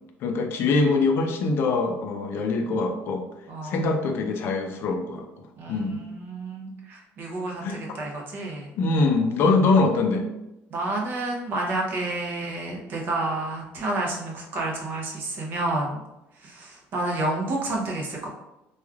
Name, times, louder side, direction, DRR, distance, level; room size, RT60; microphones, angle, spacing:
voice 1, 0.2-3.2 3.6-5.3 5.7-6.0 7.6-7.8 8.8-10.3, left 3 dB, 55° left, 4 dB, 0.4 m, -23 dB
voice 2, 3.5-3.9 5.6-8.7 10.7-16.0 16.4-18.3, right 2 dB, 45° right, -1 dB, 0.7 m, -30 dB
3.0 x 2.3 x 2.3 m, 0.92 s
cardioid pair, 135°, 5 cm